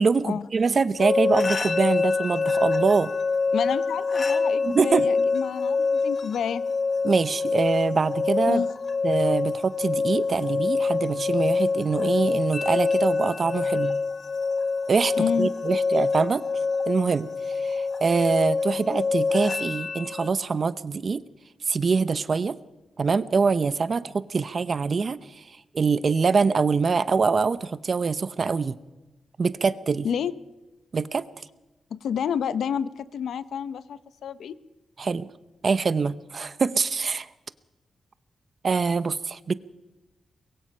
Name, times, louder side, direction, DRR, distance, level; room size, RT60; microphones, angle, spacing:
voice 1, 0.0-3.1 4.6-5.1 7.0-8.6 9.0-14.0 14.9-16.4 16.9-21.2 21.7-22.6 23.0-28.8 29.4-30.1 30.9-31.2 35.0-35.3 35.6-37.3 38.6-39.5, right 5 dB, 40° right, 15 dB, 0.7 m, -24 dB
sound 1, 1.0-20.3, left 4 dB, 35° left, 1.2 m, -25 dB
voice 2, 3.5-6.7 8.5-8.7 15.2-15.5 30.0-30.3 31.9-34.5, left 8 dB, 80° left, 14 dB, 0.9 m, -29 dB
23.5 x 22.0 x 5.6 m, 1.1 s
wide cardioid pair, 155°, 0 cm